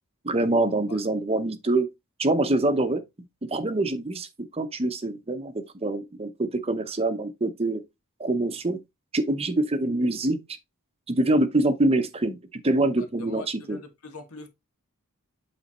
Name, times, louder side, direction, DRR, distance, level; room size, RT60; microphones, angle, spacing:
voice 1, 0.2-1.9 2.2-3.0 3.5-4.3 4.5-5.5 5.8-7.8 8.2-8.8 9.1-10.4 11.1-12.4 12.6-13.8, right 2 dB, 25° right, 0.7 m, -25 dB
voice 2, 13.0-14.5, left 4 dB, 75° left, 1.6 m, -42 dB
8.2 x 3.4 x 4.2 m
head